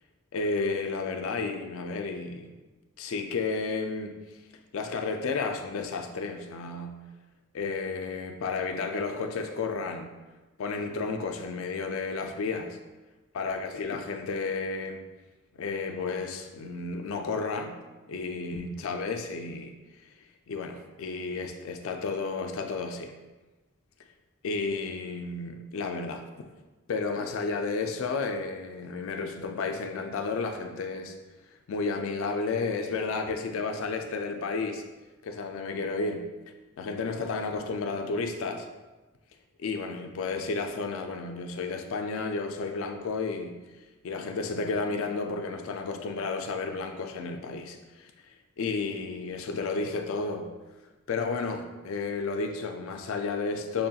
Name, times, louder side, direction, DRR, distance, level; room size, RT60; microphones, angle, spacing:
voice 1, 0.3-2.5 3.0-4.2 4.7-7.0 7.5-10.1 10.6-12.8 13.3-15.1 15.5-17.8 18.1-19.7 20.5-23.1 24.4-26.5 26.9-31.2 31.7-34.8 35.2-36.3 36.8-38.7 39.6-43.6 44.0-50.5 51.1-53.9, left 4 dB, 70° left, 5 dB, 0.4 m, -32 dB
5.6 x 2.3 x 2.7 m, 1.2 s
head